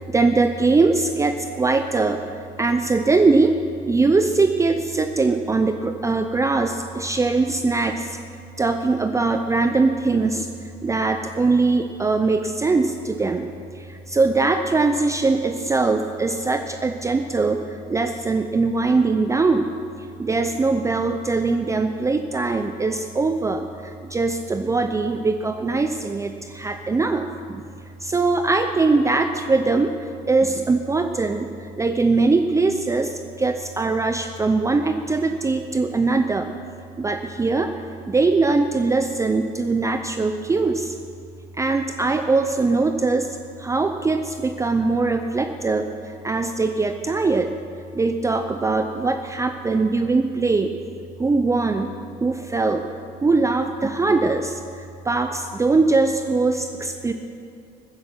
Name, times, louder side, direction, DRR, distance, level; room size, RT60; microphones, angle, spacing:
voice 1, 0.1-2.2 2.6-3.5 3.9-8.1 8.6-10.5 10.8-13.5 13.9-17.6 17.9-19.7 20.2-23.6 24.0-27.3 27.5-27.6 28.0-29.9 30.3-31.5 31.8-33.1 33.4-36.5 37.0-37.7 38.1-40.9 41.6-43.3 43.6-45.9 46.2-47.5 47.9-50.7 51.2-51.9 52.2-52.8 53.2-54.6 55.1-57.1, right 3 dB, 20° right, 7 dB, 0.5 m, -21 dB
15.0 x 10.5 x 5.9 m, 2.5 s
cardioid pair, 110°, 17 cm